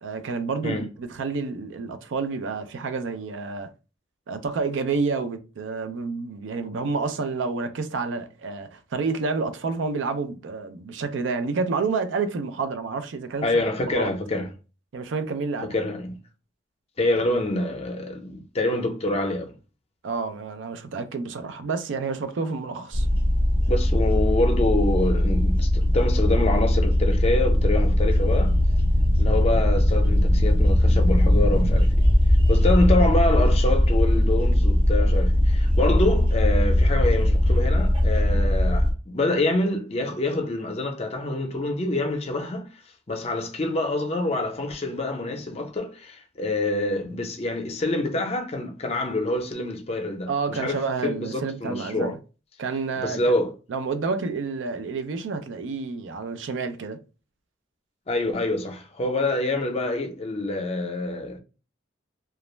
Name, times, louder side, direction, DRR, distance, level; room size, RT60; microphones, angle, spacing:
voice 1, 0.0-3.7 4.3-14.1 14.9-15.7 20.0-23.1 50.3-52.2 52.6-53.4 53.7-57.0, right 4 dB, 85° right, 0.4 m, -29 dB
voice 2, 13.4-14.5 15.7-16.2 17.0-19.5 23.7-28.6 29.2-31.9 32.5-42.7 43.1-52.2 53.0-53.5 58.1-61.4, left 2 dB, 35° left, 0.5 m, -26 dB
sound 1, 22.9-38.9, left 1 dB, 30° right, 0.5 m, -20 dB
2.3 x 2.0 x 3.1 m
head